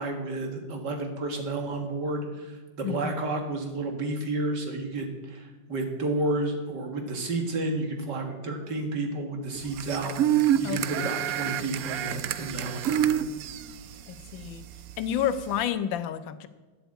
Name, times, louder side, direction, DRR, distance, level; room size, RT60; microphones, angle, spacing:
voice 1, 0.0-13.2, right 2 dB, 65° right, 3 dB, 2.4 m, -31 dB
voice 2, 2.8-3.1 10.6-11.1 14.1-14.7 15.0-16.5, left 9 dB, 80° left, 12 dB, 1.5 m, -30 dB
sound 1, 9.6-15.6, right 11 dB, 80° right, 0.8 m, -28 dB
10.5 x 8.0 x 8.1 m, 1.3 s
omnidirectional pair, 2.0 m